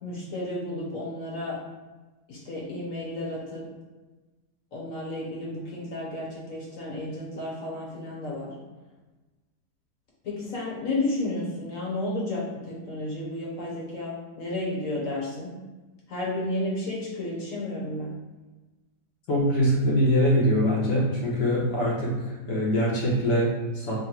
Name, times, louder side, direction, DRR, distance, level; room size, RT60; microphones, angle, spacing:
voice 1, 0.0-1.6 2.3-3.7 4.7-8.6 10.2-15.6 16.1-18.2, left 1 dB, 55° left, -4 dB, 1.2 m, -32 dB
voice 2, 19.3-24.0, equal, 80° left, -6 dB, 1.5 m, -23 dB
3.8 x 2.2 x 4.3 m, 1.2 s
omnidirectional pair, 1.8 m